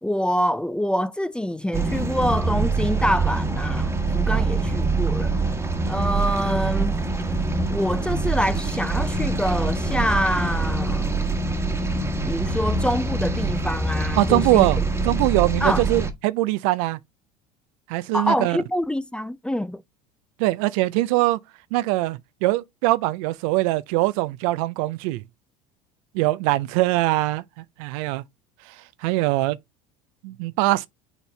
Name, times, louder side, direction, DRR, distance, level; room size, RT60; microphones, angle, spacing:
voice 1, 0.0-5.3 5.9-7.0 7.7-11.2 12.2-14.7 15.6-15.8 18.1-19.8, equal, 5° left, 0.4 m, -26 dB
sound 1, 1.7-16.1, right 3 dB, 15° right, 1.3 m, -24 dB
voice 2, 14.2-17.0 17.9-18.6 20.4-21.4 21.7-25.2 26.1-27.4 27.8-28.2 29.0-29.6 30.2-30.9, right 18 dB, 70° right, 0.5 m, -22 dB
7.1 x 4.1 x 3.3 m
hypercardioid pair, 85°, 18 cm